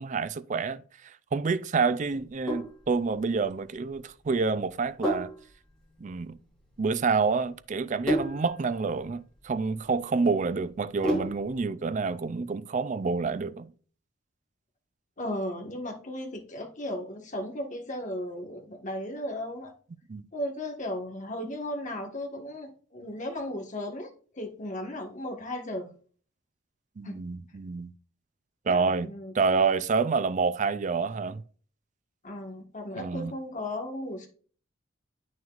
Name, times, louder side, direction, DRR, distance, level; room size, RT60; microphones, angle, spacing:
voice 1, 0.0-5.3 6.0-6.4 6.8-13.7 20.1-20.3 27.0-27.9 28.7-31.4 33.0-33.3, right 4 dB, 40° right, 0.4 m, -28 dB
Sink (filling or washing), 2.2-11.6, equal, 5° left, 3.6 m, -35 dB
voice 2, 15.2-19.7 20.3-25.9 27.0-27.2 28.7-29.3 32.2-34.3, left 1 dB, 40° left, 1.5 m, -36 dB
8.8 x 6.3 x 2.4 m
head